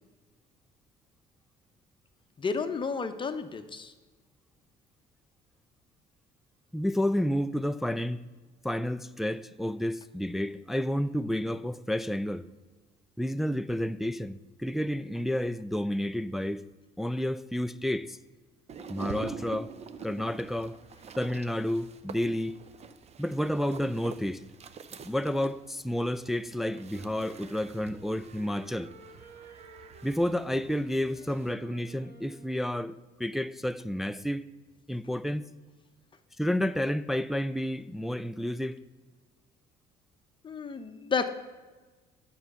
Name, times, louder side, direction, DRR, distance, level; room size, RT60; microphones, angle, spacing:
voice 1, 2.4-3.9 40.4-41.3, left 5 dB, 30° left, 0.8 m, -31 dB
voice 2, 6.7-8.2 8.6-12.4 13.2-16.6 17.0-18.2 18.9-19.7 20.0-20.8 21.2-22.6 23.2-24.4 25.0-28.9 30.0-34.5 34.9-35.4 36.4-38.8, left 1 dB, ahead, 0.3 m, -30 dB
sound 1, 18.7-31.5, right 5 dB, 40° right, 0.6 m, -46 dB
Wind instrument woodwind instrument, 26.5-33.2, right 4 dB, 70° right, 1.4 m, -53 dB
9.5 x 5.7 x 6.8 m
cardioid pair, 110°, 17 cm